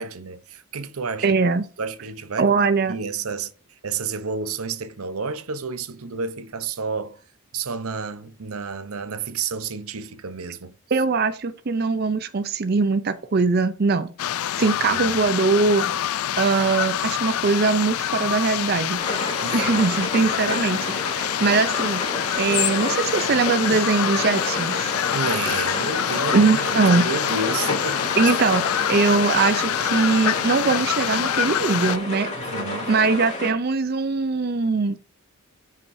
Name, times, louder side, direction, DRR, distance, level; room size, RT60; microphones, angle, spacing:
voice 1, 0.0-1.4 1.8-2.5 2.9-3.5 3.8-7.2 7.5-10.8 14.6-15.2 19.4-20.0 25.1-28.3 32.3-32.9, right 4 dB, 80° right, 0.8 m, -31 dB
voice 2, 1.2-1.6 2.4-3.0 10.9-14.1 14.6-16.0 16.4-19.0 19.5-22.0 22.4-24.9 26.3-27.1 28.2-32.3 32.9-35.0, right 4 dB, 45° right, 0.5 m, -21 dB
sound 1, 14.2-32.0, left 11 dB, 80° left, 0.4 m, -26 dB
sound 2, 19.0-33.5, left 2 dB, 30° left, 3.1 m, -30 dB
12.5 x 5.8 x 2.7 m
head